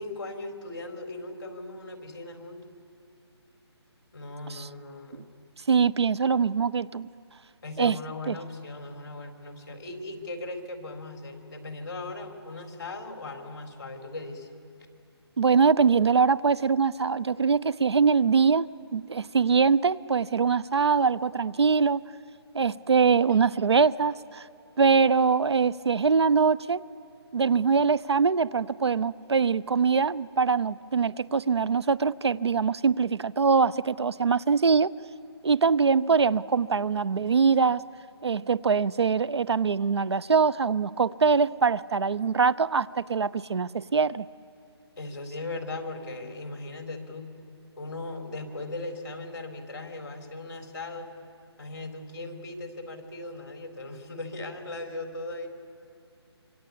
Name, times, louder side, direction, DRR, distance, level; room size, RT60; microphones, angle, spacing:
voice 1, 0.0-2.6 4.1-5.3 7.6-14.5 23.3-23.4 37.2-37.3 45.0-47.3 47.8-51.1 51.6-55.5, left 2 dB, 45° left, 4 dB, 4.0 m, -38 dB
voice 2, 5.7-7.1 7.8-8.0 8.3-8.4 15.4-22.0 22.5-24.4 24.8-26.8 27.3-34.9 35.4-37.8 38.2-44.3, right 5 dB, 75° right, 20 dB, 0.6 m, -23 dB
26.0 x 25.5 x 8.5 m, 2.5 s
hypercardioid pair, 180°, 14 cm